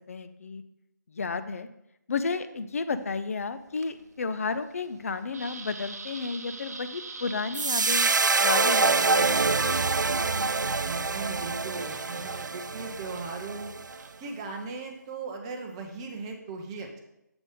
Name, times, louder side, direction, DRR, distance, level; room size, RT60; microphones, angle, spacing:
voice 1, 0.1-0.6 1.1-1.7 2.1-9.9, left 4 dB, 50° left, 11 dB, 0.5 m, -32 dB
sound 1, 2.9-14.9, right 3 dB, 55° right, 0.8 m, -46 dB
sound 2, 7.5-13.9, right 4 dB, 75° right, 0.4 m, -26 dB
voice 2, 10.8-13.7 14.2-17.0, right 4 dB, 15° right, 2 dB, 0.6 m, -38 dB
6.9 x 4.0 x 4.8 m, 0.85 s
figure-of-eight pair, 150°, 10 cm